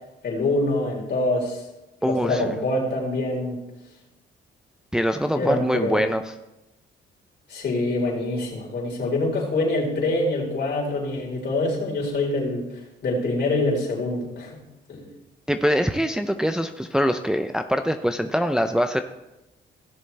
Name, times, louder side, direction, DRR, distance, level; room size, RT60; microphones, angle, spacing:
voice 1, 0.2-1.6 2.0-3.6 5.3-6.1 7.5-14.6 14.9-15.0, left 2 dB, 60° left, -3 dB, 4.3 m, -25 dB
voice 2, 2.0-2.6 4.9-6.2 15.5-19.0, equal, 5° right, 7 dB, 0.5 m, -23 dB
16.5 x 7.1 x 3.4 m, 0.97 s
cardioid pair, 90°, 20 cm